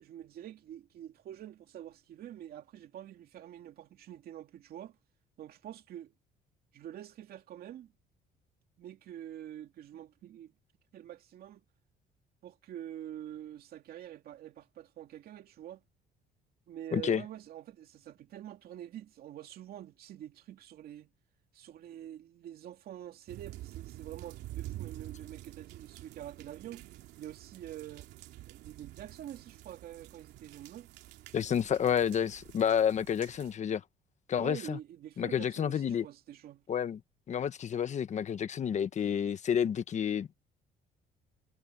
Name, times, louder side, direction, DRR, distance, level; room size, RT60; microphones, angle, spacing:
voice 1, 0.0-5.0 5.4-6.1 6.7-7.9 8.8-10.5 10.9-11.6 12.4-15.8 16.7-21.1 21.5-26.8 27.2-28.1 28.5-30.9 34.4-36.6, right 11 dB, 65° right, 2.5 m, -46 dB
voice 2, 16.9-17.2 31.3-33.8 34.3-34.8 35.2-36.0 36.7-37.0 37.3-40.3, left 8 dB, 45° left, 1.2 m, -30 dB
sound 1, 23.3-33.5, right 15 dB, 85° right, 2.9 m, -48 dB
cardioid pair, 110°, 17 cm